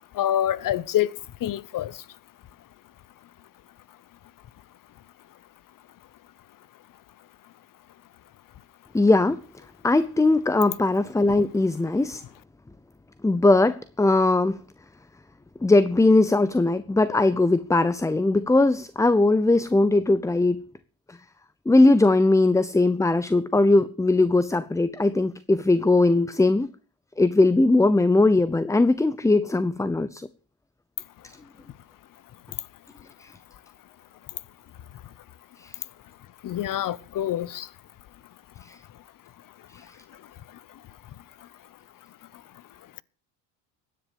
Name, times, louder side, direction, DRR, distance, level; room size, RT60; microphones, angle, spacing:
voice 1, 0.2-1.1 1.4-1.9 36.4-37.7, left 11 dB, 40° left, 1.0 m, -26 dB
voice 2, 8.9-9.4 9.8-12.2 13.2-14.6 15.6-20.6 21.1-21.2 21.7-26.7 27.2-30.3 33.2-33.3 35.6-35.7 38.7-38.8 39.7-39.8, left 2 dB, 5° left, 0.7 m, -20 dB
15.5 x 10.0 x 7.0 m
supercardioid pair, 95°, 50 cm